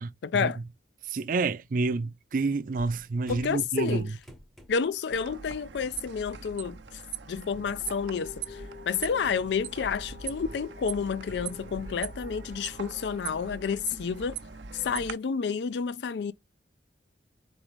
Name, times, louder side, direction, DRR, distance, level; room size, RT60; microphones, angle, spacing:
voice 1, 0.2-0.6 3.3-4.1 4.7-6.8 7.3-14.4 14.7-16.3, left 6 dB, 75° left, 0.4 m, -30 dB
voice 2, 1.1-4.0, right 3 dB, 50° right, 0.4 m, -28 dB
sound 1, 2.8-5.0 5.4-5.7 6.0-7.7, equal, ahead, 0.6 m, -50 dB
sound 2, 5.1-15.1, right 7 dB, 85° right, 0.6 m, -41 dB
sound 3, 7.8-14.7, left 4 dB, 45° left, 1.2 m, -49 dB
4.0 x 3.7 x 3.1 m
head